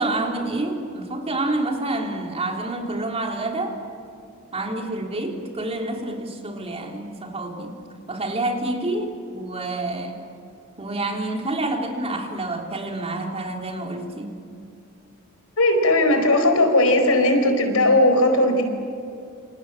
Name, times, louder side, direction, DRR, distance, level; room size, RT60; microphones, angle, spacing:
voice 1, 0.0-3.8 4.5-7.7 8.1-10.2 10.8-14.3, right 2 dB, 30° right, 2 dB, 3.4 m, -28 dB
voice 2, 15.6-18.6, left 1 dB, 80° left, 6 dB, 4.7 m, -18 dB
28.0 x 28.0 x 7.5 m, 2.5 s
head